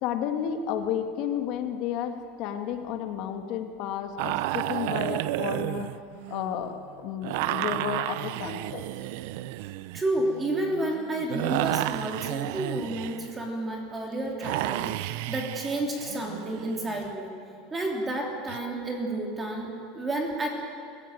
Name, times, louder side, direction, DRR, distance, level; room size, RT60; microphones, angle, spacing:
voice 1, 0.0-5.9 6.3-8.8, left 9 dB, 50° left, 6 dB, 1.8 m, -32 dB
sound 1, 4.2-6.7 7.2-13.4 14.4-17.1 18.5-18.6, right 15 dB, 65° right, 0.6 m, -32 dB
voice 2, 9.9-17.3 17.7-20.5, right 1 dB, 15° right, 0 dB, 3.1 m, -30 dB
23.0 x 15.5 x 9.1 m, 2.4 s
supercardioid pair, 155°, 0 cm